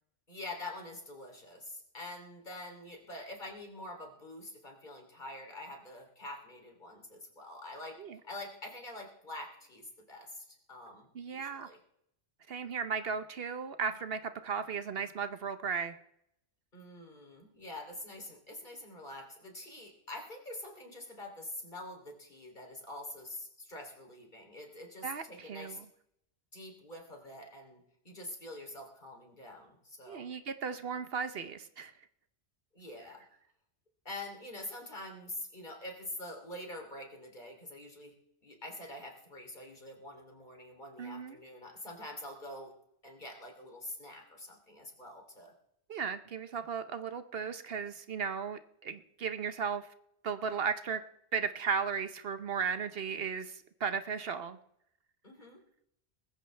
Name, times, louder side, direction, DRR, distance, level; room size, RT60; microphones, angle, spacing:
voice 1, 0.3-11.8 16.7-25.8 26.5-30.2 32.7-33.2 34.0-38.1 38.4-42.7 43.0-45.5 55.2-55.6, left 1 dB, 45° left, 2 dB, 3.3 m, -46 dB
voice 2, 11.1-11.7 12.5-16.0 25.0-25.8 30.1-31.9 41.0-41.4 45.9-49.9 50.2-51.0 51.3-54.6, right 6 dB, 65° right, 10 dB, 1.0 m, -36 dB
20.5 x 14.5 x 3.3 m, 0.75 s
omnidirectional pair, 1.1 m